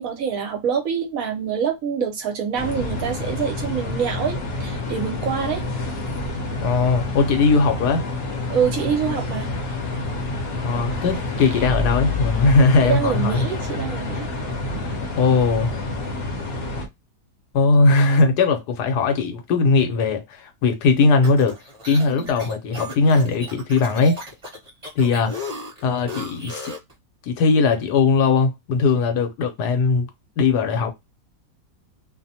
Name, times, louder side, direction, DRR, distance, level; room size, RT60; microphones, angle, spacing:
voice 1, 0.0-5.6 8.5-9.5 12.8-14.3 22.1-22.3, right 7 dB, 65° right, 1.0 m, -25 dB
sound 1, 2.5-16.9, left 2 dB, 50° left, 0.8 m, -28 dB
voice 2, 6.6-8.0 10.6-13.5 15.2-15.7 17.5-21.6 21.9-24.2 25.0-25.5 25.8-26.7 27.3-30.1 30.4-30.9, left 4 dB, 80° left, 1.2 m, -19 dB
sound 2, 11.4-14.0, left 6 dB, 80° right, 0.4 m, -29 dB
sound 3, 21.0-26.9, left 1 dB, 25° right, 1.0 m, -35 dB
2.8 x 2.1 x 2.7 m
omnidirectional pair, 1.7 m